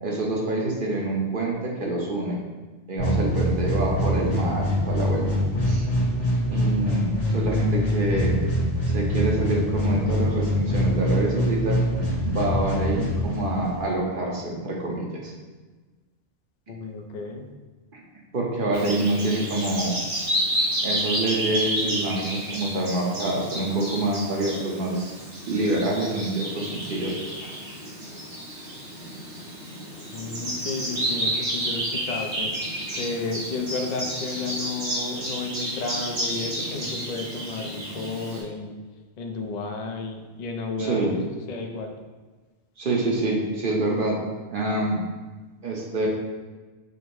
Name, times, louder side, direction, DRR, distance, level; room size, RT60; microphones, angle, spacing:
voice 1, 0.0-2.4 2.9-5.8 6.5-8.3 8.9-11.8 12.2-15.3 17.9-18.0 18.3-20.0 20.8-25.2 25.5-27.1 40.8-41.2 42.8-44.2 44.5-45.0 45.6-46.1, right 2 dB, 50° right, -2 dB, 0.9 m, -26 dB
sound 1, 3.0-13.9, equal, 80° left, 1.6 m, -24 dB
voice 2, 16.7-17.5 30.1-38.8 39.2-41.2 41.5-42.0, left 3 dB, 50° left, 3 dB, 0.5 m, -32 dB
Bird vocalization bird call bird song, 18.7-38.4, right 1 dB, 80° right, 1.6 m, -31 dB
5.0 x 2.0 x 4.6 m, 1.3 s
omnidirectional pair, 1.2 m